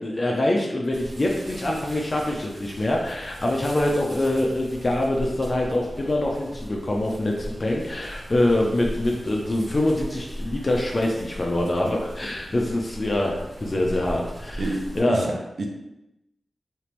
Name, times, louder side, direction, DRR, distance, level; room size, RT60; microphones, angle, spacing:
voice 1, 0.0-15.3, left 1 dB, 35° left, -1 dB, 0.4 m, -24 dB
sound 1, 0.9-15.0, equal, 50° right, 1.4 m, -38 dB
voice 2, 14.6-15.7, right 2 dB, 65° right, 2 dB, 0.5 m, -29 dB
3.4 x 2.9 x 3.0 m, 0.93 s
wide cardioid pair, 125°, 0 cm